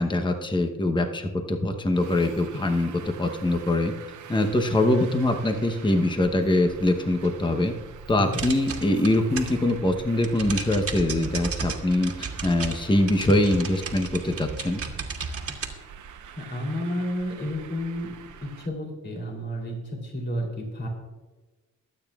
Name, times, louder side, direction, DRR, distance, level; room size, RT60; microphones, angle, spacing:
voice 1, 0.0-3.9 4.3-7.7 8.1-14.8, left 1 dB, 15° left, 5 dB, 0.9 m, -23 dB
Traffic noise roadway noise, 1.9-18.7, right 7 dB, 75° right, 0.9 m, -45 dB
sound 1, 8.3-9.7 10.0-15.7, right 4 dB, 45° right, 1.7 m, -34 dB
voice 2, 16.4-20.9, equal, 35° left, 0 dB, 3.3 m, -31 dB
23.0 x 9.0 x 2.4 m, 1.2 s
cardioid pair, 115°, 31 cm